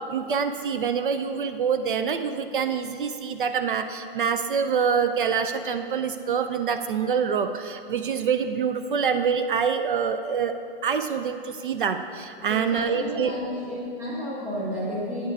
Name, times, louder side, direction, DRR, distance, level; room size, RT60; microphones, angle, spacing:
voice 1, 0.1-10.6 10.8-13.4, right 6 dB, 60° right, 9 dB, 0.4 m, -26 dB
voice 2, 12.5-15.3, equal, 5° right, -7 dB, 0.5 m, -32 dB
9.3 x 5.5 x 4.7 m, 2.4 s
hypercardioid pair, 180°, 30 cm